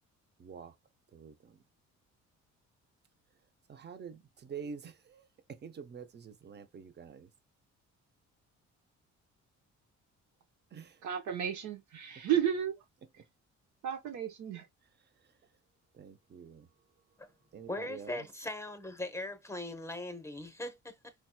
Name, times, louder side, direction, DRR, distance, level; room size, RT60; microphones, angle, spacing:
voice 1, 0.4-0.7 1.1-1.6 3.7-7.3 10.7-11.0 15.9-16.7 17.5-18.2, right 6 dB, 35° right, 0.7 m, -47 dB
voice 2, 11.0-12.8 13.8-14.7, right 9 dB, 75° right, 1.0 m, -33 dB
voice 3, 17.7-21.1, left 2 dB, 10° left, 0.8 m, -40 dB
4.5 x 2.9 x 2.2 m
cardioid pair, 90°, 30 cm